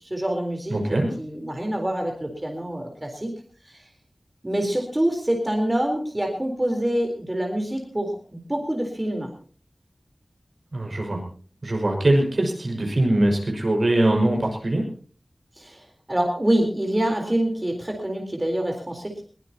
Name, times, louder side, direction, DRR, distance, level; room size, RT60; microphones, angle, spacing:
voice 1, 0.1-3.3 4.4-9.3 15.6-19.2, right 1 dB, 25° right, 2 dB, 3.9 m, -26 dB
voice 2, 0.7-1.1 10.7-11.2 11.6-14.9, right 1 dB, 60° right, 1 dB, 5.6 m, -22 dB
21.5 x 18.5 x 2.9 m, 0.42 s
wide cardioid pair, 65°, 0 cm